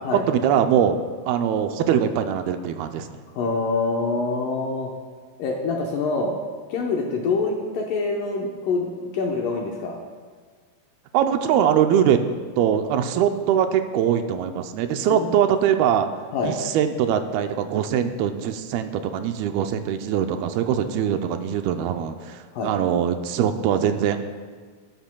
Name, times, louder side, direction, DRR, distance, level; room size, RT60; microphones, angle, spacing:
voice 1, 0.3-1.0 1.3-3.1 11.1-12.2 12.6-16.1 16.4-24.2, right 9 dB, 85° right, 7 dB, 2.5 m, -22 dB
voice 2, 3.3-4.9 5.4-6.3 6.7-9.9 11.8-11.9 15.2-15.3 16.3-16.6 22.5-22.7, left 3 dB, 70° left, 0 dB, 2.3 m, -25 dB
19.0 x 12.0 x 2.3 m, 1.6 s
omnidirectional pair, 4.4 m